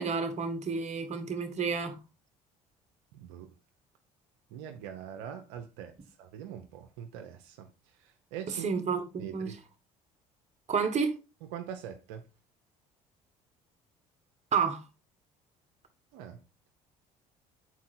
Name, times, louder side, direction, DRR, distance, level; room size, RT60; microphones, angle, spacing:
voice 1, 0.0-2.0 8.5-9.6 10.7-11.1 14.5-14.8, right 5 dB, 45° right, 1.7 m, -30 dB
voice 2, 3.1-3.5 4.5-5.9 6.2-7.7 8.0-8.7 9.2-9.5 11.5-12.2 16.1-16.4, right 9 dB, 85° right, 0.9 m, -43 dB
7.2 x 4.7 x 4.3 m
supercardioid pair, 75°, 16 cm